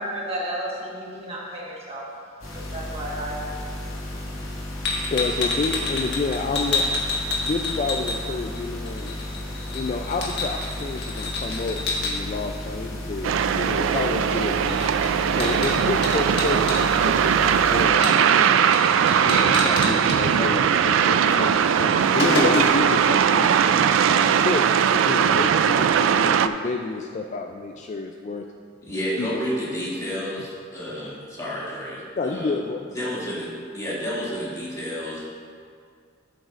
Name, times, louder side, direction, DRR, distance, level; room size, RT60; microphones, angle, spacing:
voice 1, 0.0-2.1 2.5-3.4, right 1 dB, 30° right, -4 dB, 1.4 m, -32 dB
sound 1, 2.4-17.9, left 1 dB, 90° left, 1.9 m, -34 dB
sound 2, 4.8-8.6 8.9-12.1 14.3-14.4 14.7-16.8 18.0-18.4 18.7-18.8 19.1-20.2 21.3-21.4 21.7-22.9, left 3 dB, 60° left, 1.5 m, -28 dB
voice 2, 5.1-7.0 7.4-9.1 9.7-14.8 15.3-18.6 19.2-23.6 24.1-28.4 29.2-29.4 31.0-31.1 32.2-32.8, left 3 dB, 35° left, 3 dB, 0.3 m, -29 dB
sound 3, 13.2-26.5, right 8 dB, 75° right, 0.3 m, -20 dB
voice 3, 28.8-32.6 32.9-35.2, equal, 15° left, -8 dB, 2.3 m, -30 dB
13.0 x 8.0 x 2.5 m, 2.1 s
head